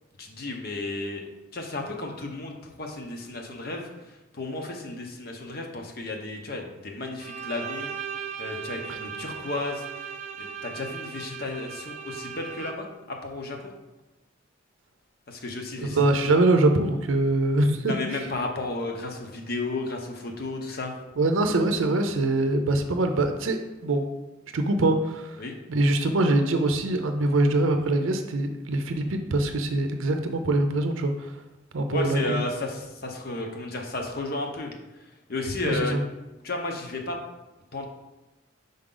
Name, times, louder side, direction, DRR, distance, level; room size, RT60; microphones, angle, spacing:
voice 1, 0.2-1.3 1.5-3.9 4.3-7.9 8.4-9.8 10.4-13.7 15.3-16.0 17.9-20.9 25.4-25.6 31.9-34.7 35.3-36.0 36.4-37.2 37.7-37.9, left 2 dB, 50° left, 2 dB, 0.8 m, -33 dB
Bowed string instrument, 7.2-13.0, right 7 dB, 35° right, 0.4 m, -37 dB
voice 2, 15.8-18.0 21.2-24.1 24.5-25.4 25.7-31.3 31.7-32.2 35.6-36.0, right 2 dB, 80° right, 6 dB, 0.5 m, -23 dB
5.4 x 4.9 x 3.8 m, 1.0 s
head